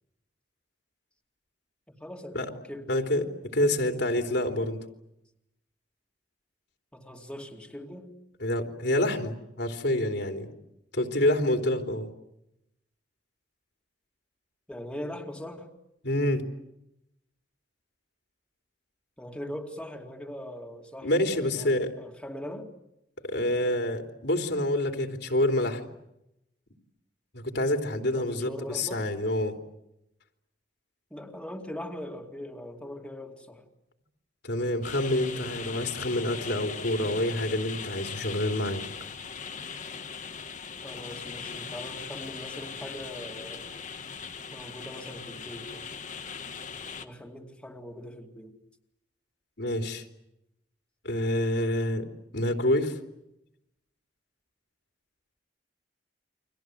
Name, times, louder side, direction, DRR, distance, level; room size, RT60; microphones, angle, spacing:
voice 1, 1.9-3.0 6.9-8.1 14.7-15.7 19.2-22.7 28.1-29.1 31.1-33.7 40.8-43.7 44.5-45.9 47.0-48.6, left 1 dB, 5° left, 1 dB, 2.6 m, -41 dB
voice 2, 2.9-3.2 3.5-4.8 8.4-10.5 10.9-12.1 16.0-16.4 21.0-21.9 23.2-25.8 27.3-29.5 34.4-38.8 49.6-50.0 51.0-52.1 52.3-53.0, left 1 dB, 70° left, 4 dB, 3.4 m, -27 dB
sound 1, 34.8-47.1, left 6 dB, 45° left, 1.7 m, -39 dB
30.0 x 25.0 x 8.0 m, 0.84 s
head